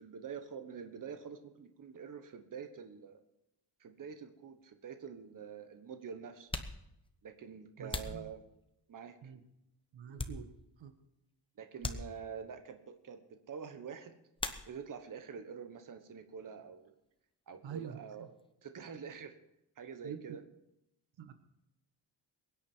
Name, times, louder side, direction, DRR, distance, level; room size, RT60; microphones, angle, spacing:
voice 1, 0.0-3.2 3.8-6.5 7.2-8.4 8.9-9.2 11.6-14.1 14.6-16.9 17.5-18.3 18.6-19.3 19.8-20.4, right 6 dB, 45° right, 7 dB, 1.3 m, -46 dB
sound 1, 4.6-4.7 5.6-5.7 6.3-9.0 9.5-10.9 11.2-11.3 11.8-12.6 14.3-15.1 15.4-16.1 16.4-18.5, left 2 dB, 10° left, 0.9 m, -44 dB
voice 2, 7.8-8.3 9.2-9.4 9.9-10.5 10.8-10.9 17.6-18.3 20.0-20.4 21.2-21.3, right 8 dB, 90° right, 9 dB, 1.5 m, -46 dB
22.5 x 9.8 x 4.6 m, 0.85 s
wide cardioid pair, 170°, 44 cm